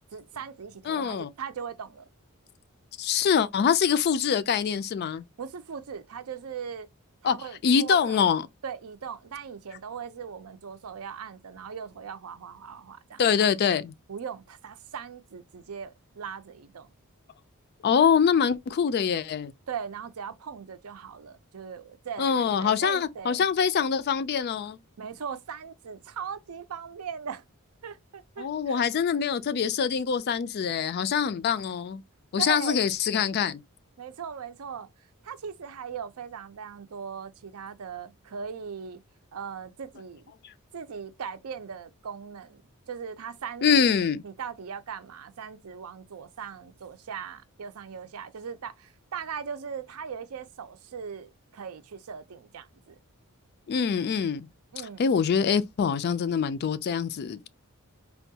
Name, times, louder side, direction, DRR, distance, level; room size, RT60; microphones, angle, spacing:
voice 1, 0.1-2.1 5.4-6.9 7.2-8.2 8.6-13.2 14.1-16.9 19.7-23.5 25.0-27.4 27.8-28.9 32.4-32.8 34.0-34.9 35.2-39.0 39.3-40.3 40.7-42.6 42.9-43.9 44.2-53.0 54.7-55.0, right 7 dB, 70° right, 0.5 m, -39 dB
voice 2, 0.9-1.3 3.0-5.2 7.2-7.4 7.6-8.4 13.2-13.9 17.8-19.5 22.2-24.8 28.4-32.0 32.3-33.6 40.4-40.5 43.6-44.2 53.7-54.5 55.0-57.5, left 7 dB, 45° left, 0.3 m, -24 dB
4.3 x 2.3 x 2.7 m
head